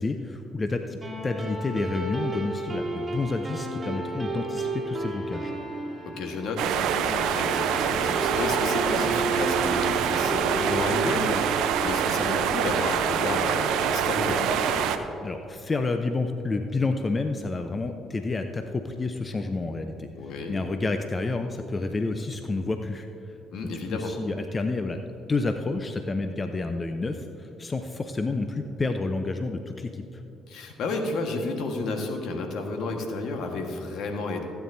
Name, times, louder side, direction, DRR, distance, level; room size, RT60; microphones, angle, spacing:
voice 1, 0.0-5.5 15.2-20.1 20.5-23.1 23.9-25.0 25.3-30.2, left 3 dB, 30° left, 6 dB, 0.7 m, -29 dB
sound 1, 1.0-13.8, right 2 dB, 20° right, 2.5 m, -33 dB
voice 2, 6.0-14.9 20.2-20.6 23.5-24.1 30.5-34.4, left 3 dB, 65° left, 3 dB, 1.5 m, -32 dB
sound 2, 6.6-15.0, right 8 dB, 70° right, 0.6 m, -25 dB
16.0 x 9.3 x 2.7 m, 2.9 s
hypercardioid pair, 55°, 0 cm